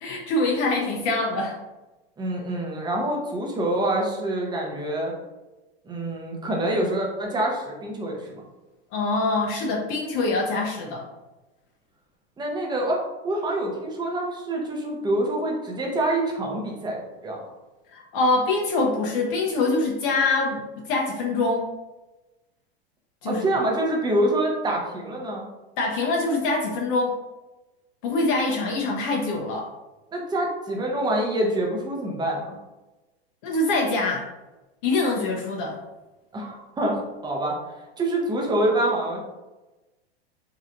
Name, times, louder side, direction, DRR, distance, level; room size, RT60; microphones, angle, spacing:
voice 1, 0.0-1.6 8.9-11.1 17.9-21.7 23.2-23.5 25.8-27.2 28.0-29.7 33.4-34.3 34.8-35.8, left 2 dB, 55° left, -1 dB, 0.6 m, -24 dB
voice 2, 2.2-5.1 5.9-8.4 12.4-17.4 23.3-25.5 30.1-32.5 36.3-37.6 38.0-39.2, right 1 dB, 15° right, -1 dB, 0.7 m, -26 dB
3.1 x 2.8 x 2.5 m, 1.1 s
hypercardioid pair, 110°, 32 cm